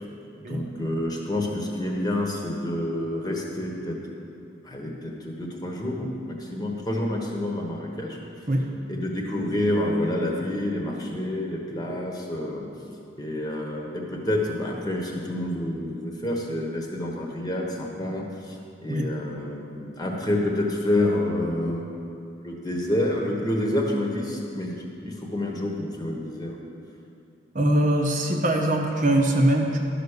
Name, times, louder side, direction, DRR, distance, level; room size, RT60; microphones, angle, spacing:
voice 1, 0.4-4.0 4.6-8.2 8.9-12.7 13.2-18.6 18.8-21.9 22.4-26.6, left 1 dB, 20° left, -1 dB, 1.2 m, -28 dB
voice 2, 27.5-29.8, right 1 dB, 45° right, 1 dB, 0.9 m, -22 dB
12.0 x 6.0 x 6.7 m, 2.7 s
head